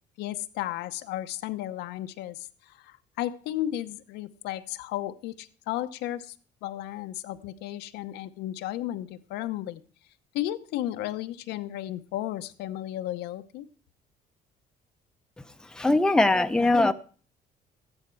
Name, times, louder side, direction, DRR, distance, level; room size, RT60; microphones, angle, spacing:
voice 1, 0.2-6.3 6.6-9.8 10.3-13.6, left 13 dB, 90° left, 0.8 m, -34 dB
voice 2, 15.6-16.9, left 2 dB, 5° left, 0.7 m, -21 dB
13.5 x 9.8 x 4.6 m
cardioid pair, 110°, 17 cm